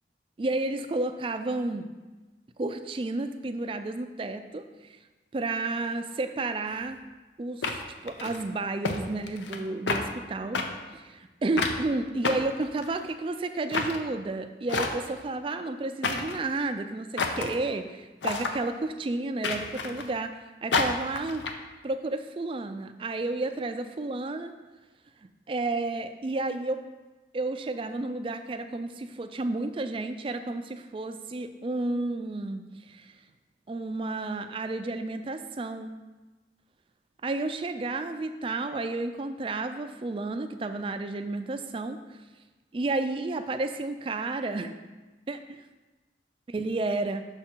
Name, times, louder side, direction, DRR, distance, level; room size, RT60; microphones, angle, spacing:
voice 1, 0.4-1.9 2.6-5.0 5.3-7.0 7.4-10.6 10.9-21.4 21.8-24.5 25.5-26.8 27.3-33.1 33.7-36.0 37.2-42.0 42.7-44.8 45.3-45.6 46.5-47.3, right 2 dB, 30° right, 9 dB, 0.3 m, -31 dB
sound 1, 6.7-6.8 7.6-8.4 8.8-9.0 9.3-9.6 9.9-10.0 10.5-10.7 11.6-11.8 12.2-13.1 13.7-14.0 14.7-15.2 16.0-16.4 17.2-17.5 18.2-18.6 19.4-20.1 20.7-21.5, left 4 dB, 80° left, 0.6 m, -29 dB
6.2 x 4.9 x 4.4 m, 1.2 s
head